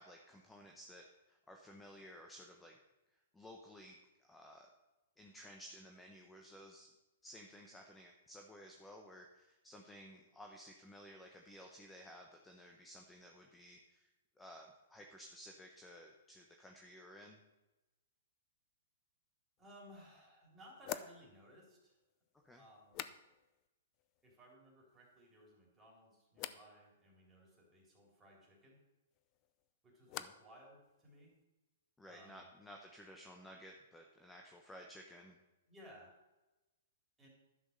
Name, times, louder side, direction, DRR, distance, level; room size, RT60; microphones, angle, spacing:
voice 1, 0.0-2.8 3.3-4.7 5.2-6.9 7.2-14.1 14.4-17.4 22.4-22.6 30.2-30.3 32.0-35.4, equal, 5° left, 2 dB, 0.9 m, -55 dB
sound 1, 19.6-19.7 20.8-23.7 23.9-24.5 24.9-25.5 26.3-26.7 29.1-30.6 30.8-31.4, left 12 dB, 30° left, 0.5 m, -50 dB
voice 2, 19.6-22.0 22.5-23.1 24.2-28.8 29.8-31.4 32.0-32.5 35.7-36.1 37.2-37.3, equal, 10° right, -3 dB, 3.8 m, -60 dB
11.0 x 6.2 x 6.8 m, 1.0 s
hypercardioid pair, 150°, 0 cm